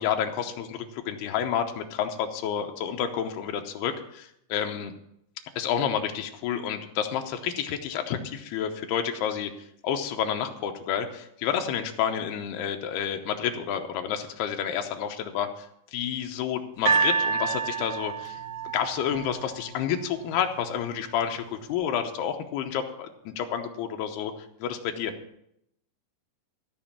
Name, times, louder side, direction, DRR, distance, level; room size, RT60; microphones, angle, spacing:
voice 1, 0.0-4.9 5.6-9.5 9.8-15.5 15.9-18.4 18.7-21.4 21.7-24.3 24.6-25.1, left 8 dB, 75° left, 5 dB, 2.6 m, -29 dB
sound 1, 16.9-20.0 20.8-20.9, right 5 dB, 55° right, 2.6 m, -28 dB
14.0 x 6.1 x 7.4 m, 0.76 s
omnidirectional pair, 5.3 m